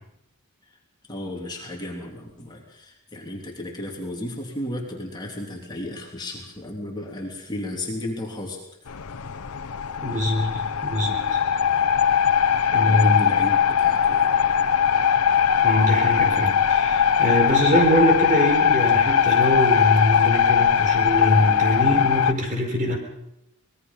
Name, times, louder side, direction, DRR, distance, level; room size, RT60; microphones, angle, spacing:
voice 1, 1.1-8.9 12.8-14.3, left 1 dB, 20° left, -1 dB, 3.2 m, -34 dB
sound 1, 8.9-22.3, left 7 dB, 85° left, 0.8 m, -20 dB
voice 2, 10.0-11.4 12.7-13.3 15.6-23.0, equal, 35° right, 3 dB, 4.5 m, -23 dB
25.0 x 20.5 x 5.6 m, 0.81 s
head